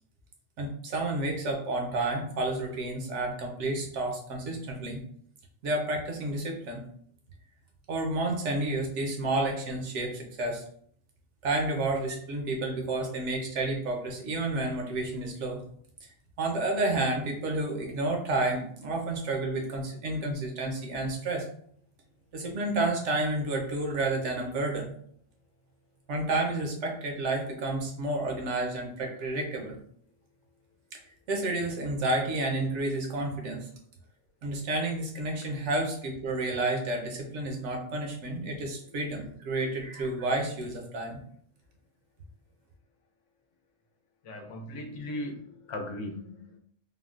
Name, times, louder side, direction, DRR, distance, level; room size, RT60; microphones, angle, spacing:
voice 1, 0.6-5.0 5.6-6.8 7.9-10.6 11.4-15.6 16.4-21.5 22.3-24.9 26.1-29.7 30.9-31.0 31.3-33.7 34.4-41.2, right 2 dB, 75° right, 1 dB, 1.0 m, -30 dB
voice 2, 44.2-46.6, left 1 dB, 80° left, 2 dB, 0.9 m, -38 dB
3.5 x 2.1 x 2.4 m, 0.62 s
omnidirectional pair, 1.3 m